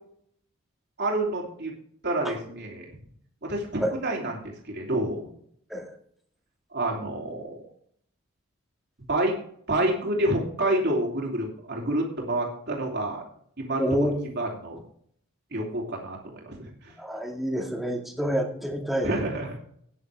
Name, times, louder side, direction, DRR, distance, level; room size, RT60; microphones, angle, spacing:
voice 1, 1.0-1.7 2.0-2.9 3.4-5.2 6.7-7.7 9.1-9.4 9.7-13.2 13.6-14.1 14.3-14.8 15.5-16.9 19.0-19.6, right 1 dB, 50° right, -2 dB, 3.1 m, -28 dB
voice 2, 13.8-14.2 17.0-19.2, equal, ahead, 1 dB, 2.0 m, -27 dB
13.5 x 9.8 x 3.5 m, 0.64 s
head